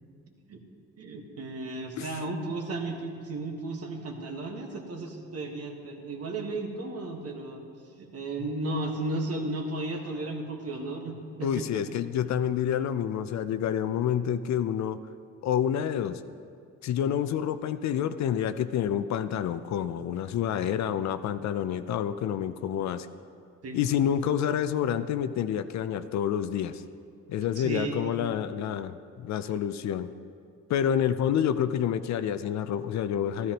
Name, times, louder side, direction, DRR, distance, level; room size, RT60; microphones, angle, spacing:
voice 1, 1.0-7.6 8.0-11.8 23.6-23.8 27.4-28.1, right 2 dB, 55° right, 3 dB, 1.5 m, -34 dB
voice 2, 11.4-15.0 15.4-16.2 16.8-23.1 23.7-26.8 27.3-30.1 30.7-33.5, left 9 dB, 65° left, 11 dB, 0.5 m, -28 dB
13.0 x 12.5 x 3.0 m, 2.3 s
cardioid pair, 90°, 30 cm